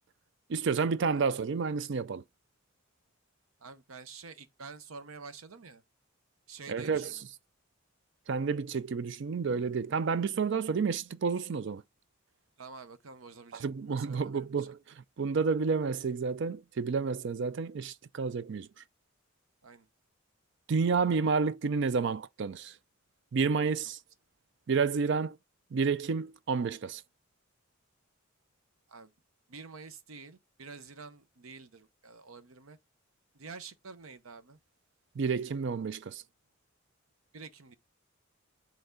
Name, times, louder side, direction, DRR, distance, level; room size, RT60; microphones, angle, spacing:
voice 1, 0.5-2.2 6.7-7.2 8.3-11.8 13.6-18.8 20.7-22.8 23.3-24.0 24.7-25.4 25.7-27.0 35.2-36.2, right 5 dB, 60° right, 0.4 m, -30 dB
voice 2, 3.6-5.8 6.5-7.2 12.6-14.7 19.6-19.9 28.9-29.1 29.5-32.8 33.3-34.6 37.3-37.8, right 4 dB, 90° right, 0.8 m, -48 dB
8.0 x 3.4 x 3.7 m
head